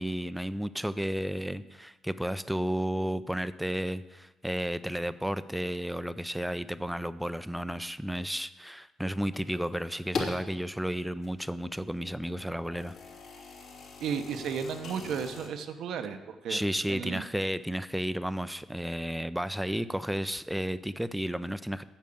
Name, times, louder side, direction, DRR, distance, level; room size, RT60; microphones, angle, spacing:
voice 1, 0.0-12.9 16.5-21.8, equal, 5° right, 14 dB, 0.5 m, -32 dB
sound 1, 9.3-10.5 11.0-15.5, left 4 dB, 65° left, 2.9 m, -41 dB
voice 2, 14.0-17.2, right 7 dB, 75° right, 8 dB, 1.0 m, -34 dB
9.0 x 6.6 x 8.5 m, 1.1 s
cardioid pair, 90°, 0 cm